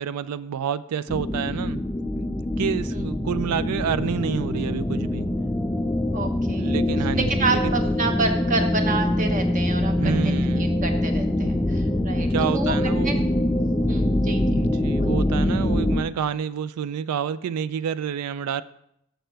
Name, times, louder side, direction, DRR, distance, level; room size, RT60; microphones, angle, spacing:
voice 1, 0.0-1.8 2.6-5.3 6.6-7.7 10.0-10.8 12.3-13.2 14.5-18.6, right 8 dB, 90° right, 15 dB, 0.3 m, -28 dB
sound 1, 1.1-16.0, left 1 dB, 5° left, 0.3 m, -24 dB
voice 2, 6.1-6.7 7.2-13.2 13.9-14.4 15.0-15.2, right 3 dB, 35° right, 5 dB, 0.9 m, -29 dB
6.6 x 6.6 x 4.5 m, 0.75 s
head